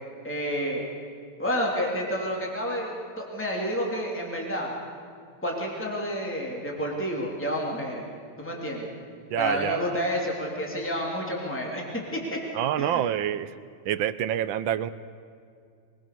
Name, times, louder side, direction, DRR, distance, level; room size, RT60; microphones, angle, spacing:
voice 1, 0.2-0.8 1.4-4.7 5.4-8.0 8.4-8.9 9.4-12.4 12.8-13.0, equal, 5° left, -2 dB, 3.1 m, -30 dB
voice 2, 9.3-10.0 12.5-13.5 13.9-14.9, right 10 dB, 75° right, 14 dB, 1.5 m, -27 dB
23.5 x 21.5 x 6.8 m, 2.3 s
omnidirectional pair, 2.2 m